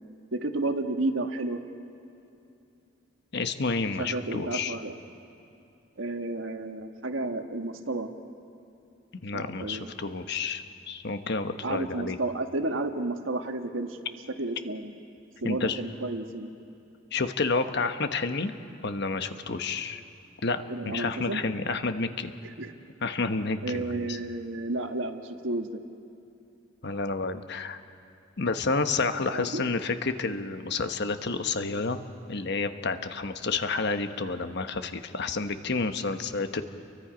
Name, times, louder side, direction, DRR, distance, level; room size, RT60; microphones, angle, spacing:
voice 1, 0.3-1.6 4.0-4.9 6.0-8.1 9.3-9.9 11.6-14.9 15.4-16.5 20.7-21.4 22.6-22.7 23.6-25.7 29.3-29.7, right 2 dB, 75° right, 5 dB, 1.5 m, -32 dB
voice 2, 3.3-4.8 9.2-12.2 15.4-15.8 17.1-18.5 18.8-20.0 20.4-22.3 23.0-24.2 26.8-27.8 28.4-32.0 32.3-36.7, left 4 dB, 60° left, 8 dB, 1.1 m, -30 dB
30.0 x 23.0 x 5.1 m, 2.7 s
head